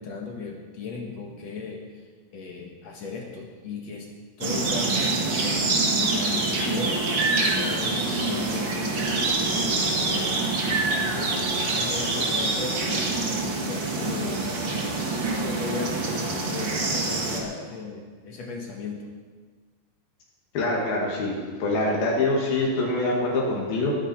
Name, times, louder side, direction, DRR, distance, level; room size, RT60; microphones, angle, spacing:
voice 1, 0.0-1.8 2.3-4.1 4.4-5.7 6.0-19.1, left 4 dB, 55° left, 1 dB, 2.2 m, -37 dB
sound 1, 4.4-17.4, right 3 dB, 45° right, 1.9 m, -25 dB
voice 2, 20.5-23.9, left 2 dB, 85° left, -3 dB, 3.9 m, -25 dB
20.0 x 10.0 x 4.5 m, 1.5 s
omnidirectional pair, 4.1 m